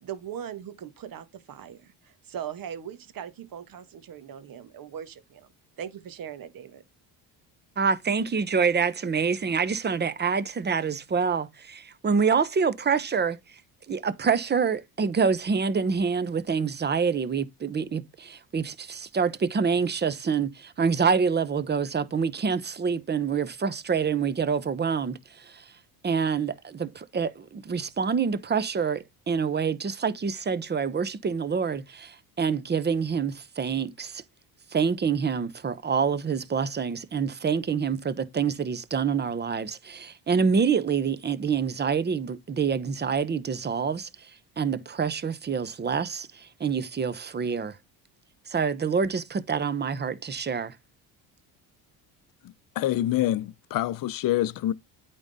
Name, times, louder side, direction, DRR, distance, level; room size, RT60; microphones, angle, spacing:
voice 1, 0.0-5.5 5.8-6.8, right 9 dB, 50° right, 1.4 m, -40 dB
voice 2, 7.8-13.4 13.9-25.6 26.0-34.2 34.7-44.1 44.6-47.8 48.5-50.8, right 6 dB, 25° right, 0.8 m, -26 dB
voice 3, 52.8-54.7, left 13 dB, 50° left, 0.7 m, -26 dB
8.8 x 3.8 x 4.0 m
cardioid pair, 100°, 42 cm